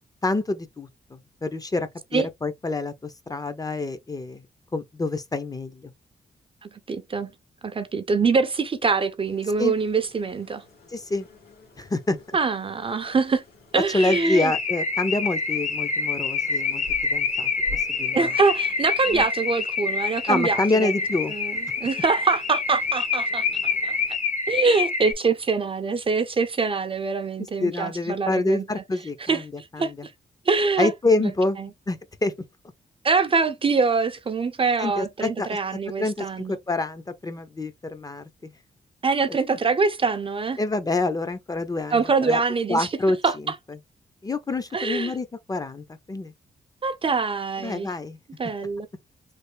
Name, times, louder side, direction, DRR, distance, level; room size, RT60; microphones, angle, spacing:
voice 1, 0.2-4.4 4.7-5.9 9.6-9.7 10.9-11.3 11.8-12.2 13.9-18.3 20.3-21.3 27.6-30.1 30.8-31.6 31.9-32.3 34.8-35.6 36.0-38.5 40.6-42.4 42.7-43.2 44.2-46.3 47.6-48.2, left 2 dB, 20° left, 0.5 m, -27 dB
voice 2, 6.9-7.3 7.6-10.6 12.3-13.4 13.7-14.5 18.1-20.9 21.3-24.0 24.5-28.6 29.2-30.1 30.5-30.9 31.2-31.3 31.6-31.7 33.0-36.6 39.0-40.6 41.9-42.9 43.2-43.5 44.7-45.1 46.8-47.9 48.4-48.9, right 4 dB, 35° right, 0.5 m, -24 dB
sound 1, 9.2-24.2, left 2 dB, 70° left, 1.8 m, -48 dB
Car / Alarm, 14.0-25.1, left 4 dB, 45° left, 0.8 m, -27 dB
3.3 x 2.4 x 3.2 m
cardioid pair, 100°, 17 cm